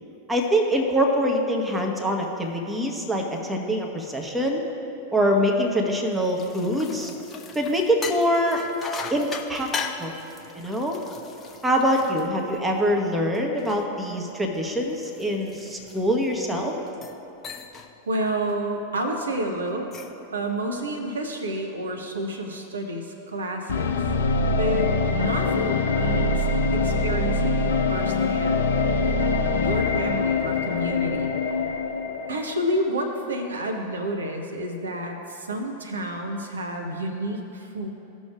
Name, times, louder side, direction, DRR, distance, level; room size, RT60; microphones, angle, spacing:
voice 1, 0.3-4.6 5.1-7.1 7.5-8.6 9.1-9.7 10.0-10.1 10.5-11.0 11.6-16.7, equal, 5° right, 1 dB, 1.0 m, -24 dB
sound 1, 6.1-12.9 13.3-16.4 16.9-17.2 17.4-17.9 18.3-18.5 19.7-20.2, left 5 dB, 20° left, 0.5 m, -38 dB
voice 2, 18.1-19.9 20.3-24.0 24.5-26.5 26.7-29.0 29.6-31.3 32.3-37.9, right 1 dB, 70° right, 3 dB, 0.7 m, -30 dB
sound 2, 23.7-32.7, left 3 dB, 65° left, 0.6 m, -24 dB
15.5 x 6.2 x 2.4 m, 2.9 s
figure-of-eight pair, 90°, 0 cm